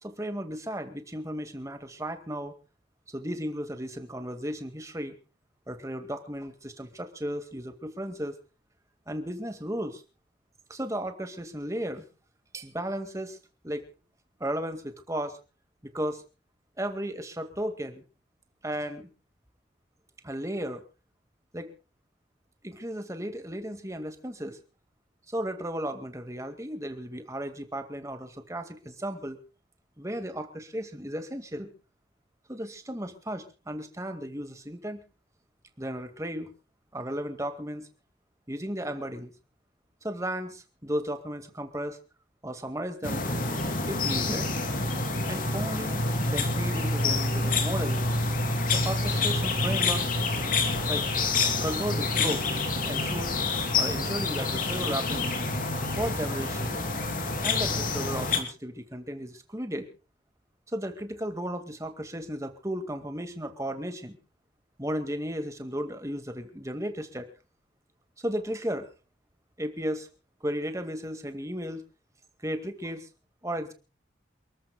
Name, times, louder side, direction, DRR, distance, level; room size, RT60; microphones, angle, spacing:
voice 1, 0.0-2.5 3.1-5.2 5.7-8.3 9.1-10.0 10.7-12.0 12.5-13.4 13.6-13.9 14.4-15.4 15.9-16.2 16.8-18.0 18.6-19.1 20.2-20.8 21.5-21.7 22.6-24.6 25.3-29.4 30.0-31.7 32.5-35.0 35.8-36.5 36.9-37.9 38.5-39.3 40.0-42.0 42.4-43.3 43.9-44.5 45.3-48.0 48.7-50.0 50.9-51.0 51.6-52.5 52.9-53.3 53.8-55.3 55.8-56.8 57.4-59.9 60.7-64.2 64.8-67.3 68.2-68.9 69.6-70.1 70.4-71.8 72.4-73.1 73.4-73.7, equal, 15° right, 8 dB, 2.1 m, -34 dB
sound 1, 43.0-58.4, left 3 dB, 45° left, 3.3 m, -27 dB
28.5 x 13.5 x 2.3 m, 0.34 s
head